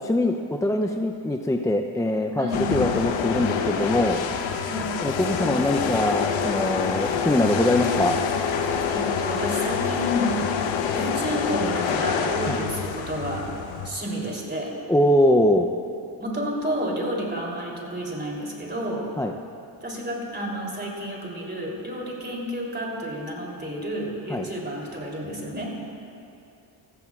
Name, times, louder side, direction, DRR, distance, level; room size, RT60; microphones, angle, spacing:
voice 1, 0.0-4.2 5.0-8.2 12.5-12.6 14.9-15.7 19.2-19.3 24.3-24.5, left 1 dB, 5° left, 4 dB, 0.5 m, -23 dB
sound 1, 2.5-13.9, left 7 dB, 85° left, 0.8 m, -26 dB
voice 2, 8.9-10.3 10.9-13.4 13.8-14.7 16.2-19.1 19.8-25.7, equal, 25° right, -2 dB, 3.1 m, -30 dB
15.0 x 14.5 x 2.4 m, 2.6 s
cardioid pair, 70°, 44 cm